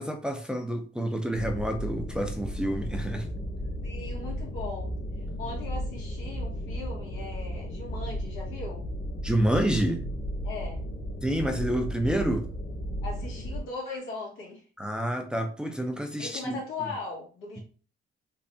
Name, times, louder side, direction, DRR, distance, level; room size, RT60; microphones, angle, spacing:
voice 1, 0.0-3.3 9.2-10.0 11.2-12.5 14.8-16.6, right 1 dB, 5° right, 3 dB, 0.6 m, -28 dB
sound 1, 1.3-13.6, equal, 60° left, 1.9 m, -34 dB
voice 2, 3.8-4.9 5.4-8.8 10.4-10.8 13.0-14.6 16.2-17.6, left 3 dB, 85° left, -3 dB, 1.9 m, -39 dB
3.6 x 3.3 x 2.7 m, 0.37 s
cardioid pair, 90°, 20 cm